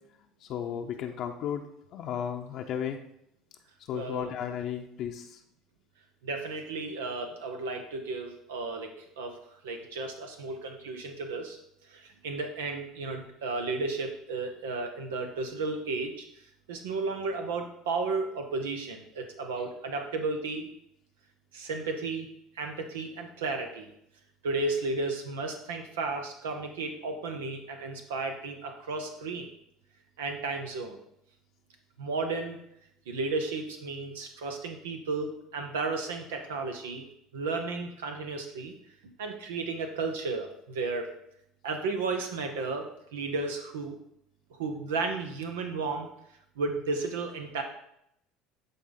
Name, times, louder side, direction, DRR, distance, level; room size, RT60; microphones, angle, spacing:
voice 1, 0.4-1.6 1.9-3.0 3.9-5.3, left 9 dB, 55° left, 3 dB, 0.7 m, -34 dB
voice 2, 3.9-4.3 6.2-8.9 9.2-9.4 9.6-11.6 11.9-16.3 16.7-20.7 21.5-22.3 22.5-23.9 24.4-29.5 30.2-31.0 32.0-32.6 33.1-37.1 37.3-38.7 39.2-41.1 41.6-43.9 44.6-46.1 46.6-47.6, right 3 dB, 90° right, 4 dB, 0.9 m, -33 dB
10.5 x 3.9 x 4.0 m, 0.76 s
supercardioid pair, 85°, 0 cm